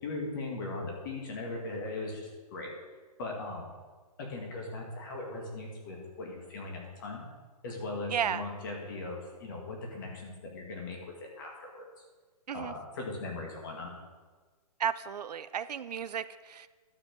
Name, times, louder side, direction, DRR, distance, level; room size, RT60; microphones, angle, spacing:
voice 1, 0.0-2.7 3.2-3.8 4.2-7.3 7.6-12.0 12.5-13.9, left 2 dB, 30° left, 0 dB, 2.0 m, -39 dB
voice 2, 8.1-8.4 12.5-12.7 14.8-16.7, right 8 dB, 85° right, 14 dB, 0.6 m, -33 dB
11.5 x 7.1 x 5.3 m, 1.4 s
hypercardioid pair, 170°, 20 cm